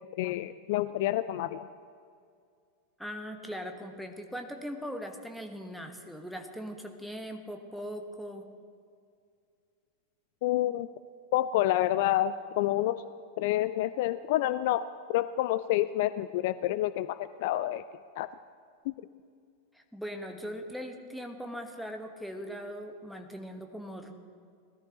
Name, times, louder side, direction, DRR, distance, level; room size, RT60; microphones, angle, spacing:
voice 1, 0.2-1.7 10.4-10.9 11.3-13.0 13.4-14.8 15.1-17.8 18.2-18.3 18.9-19.0, left 14 dB, 50° left, 14 dB, 0.3 m, -28 dB
voice 2, 3.0-8.4 19.7-24.1, equal, ahead, 3 dB, 1.3 m, -40 dB
20.0 x 13.5 x 2.9 m, 2.3 s
figure-of-eight pair, 90°, 0 cm